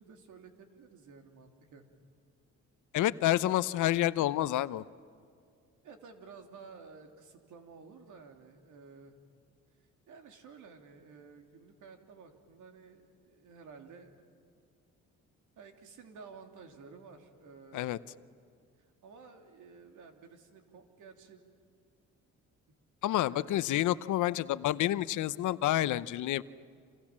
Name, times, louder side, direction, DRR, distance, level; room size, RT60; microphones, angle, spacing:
voice 1, 0.0-1.8 5.8-9.1 10.1-14.2 15.6-18.0 18.8-21.4 23.3-23.5, right 5 dB, 80° right, 5 dB, 3.2 m, -53 dB
voice 2, 2.9-4.8 17.7-18.0 23.0-26.4, left 14 dB, 80° left, 16 dB, 0.8 m, -29 dB
29.0 x 27.0 x 7.4 m, 2.2 s
cardioid pair, 90°, 30 cm